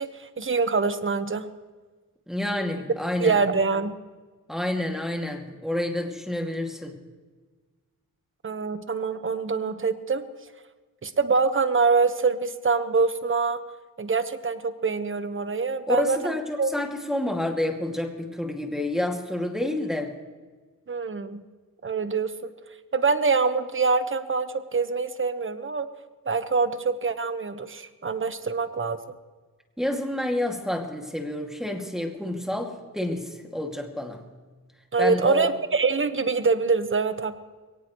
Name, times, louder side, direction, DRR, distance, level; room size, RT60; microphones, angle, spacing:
voice 1, 0.0-1.5 3.2-4.0 8.4-10.3 11.0-13.6 14.0-16.3 16.6-16.7 20.9-21.4 21.8-22.5 22.9-25.9 26.3-29.0 34.9-37.4, right 4 dB, 35° right, 10 dB, 1.3 m, -25 dB
voice 2, 2.3-3.4 4.5-6.9 15.9-20.1 29.8-34.2 35.0-35.5, left 1 dB, ahead, 2 dB, 2.4 m, -29 dB
22.0 x 18.5 x 3.2 m, 1.4 s
cardioid pair, 85°, 35 cm